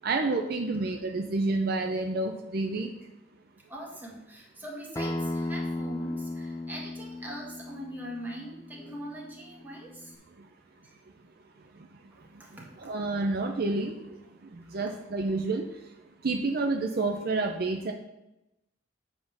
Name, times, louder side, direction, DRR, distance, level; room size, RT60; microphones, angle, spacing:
voice 1, 0.0-2.9 12.8-14.0 14.7-15.7 16.2-17.9, right 3 dB, 55° right, 3 dB, 0.6 m, -29 dB
voice 2, 3.7-10.2 10.8-10.9 12.1-12.9 14.6-14.9, right 1 dB, 10° right, -3 dB, 1.6 m, -42 dB
Acoustic guitar, 5.0-10.2, left 2 dB, 15° left, 0.4 m, -36 dB
7.2 x 3.7 x 6.3 m, 0.91 s
head